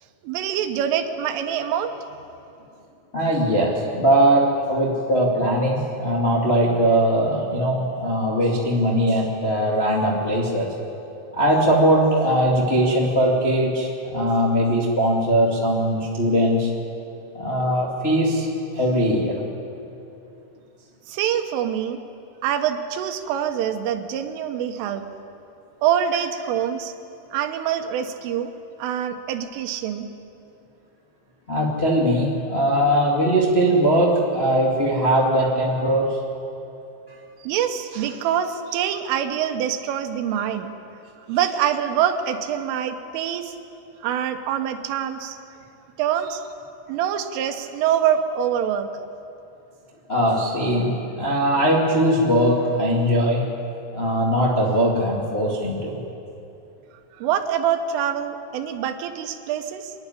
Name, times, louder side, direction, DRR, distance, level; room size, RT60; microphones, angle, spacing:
voice 1, 0.2-1.9 21.1-22.0 22.4-25.1 25.8-26.9 27.3-28.5 28.8-30.1 37.4-40.7 41.3-43.6 44.0-45.4 46.0-46.4 46.9-48.9 57.2-59.9, right 9 dB, 85° right, 7 dB, 3.6 m, -25 dB
voice 2, 3.1-10.7 11.3-16.7 17.3-18.5 18.7-19.5 31.5-36.2 50.1-53.4 53.9-56.0, right 1 dB, 40° left, -4 dB, 0.8 m, -20 dB
26.5 x 11.0 x 9.9 m, 2.8 s
omnidirectional pair, 5.6 m